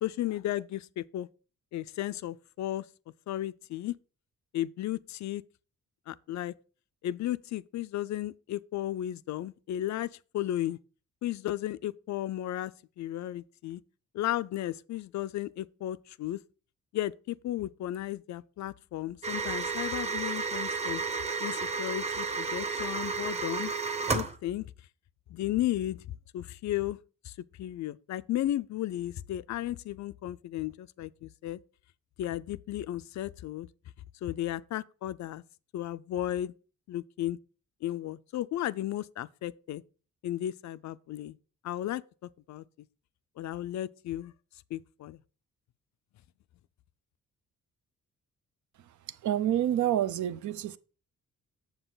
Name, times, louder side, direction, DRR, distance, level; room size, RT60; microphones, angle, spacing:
voice 1, 0.0-1.3 1.7-2.9 3.3-3.9 4.5-5.4 6.1-6.5 7.0-10.8 11.2-13.8 14.1-16.4 16.9-21.0 21.4-23.7 24.1-24.7 25.3-26.1 26.3-27.0 27.2-31.6 32.2-33.7 34.2-35.4 35.7-36.5 36.9-37.4 37.8-39.8 40.2-41.3 41.6-42.6 43.4-44.3 44.7-45.2, left 13 dB, 65° left, 0.4 m, -34 dB
sound 1, 19.2-24.4, right 4 dB, 20° right, 0.8 m, -32 dB
voice 2, 49.2-50.8, right 11 dB, 70° right, 0.6 m, -28 dB
8.0 x 7.3 x 3.9 m
cardioid pair, 140°, 31 cm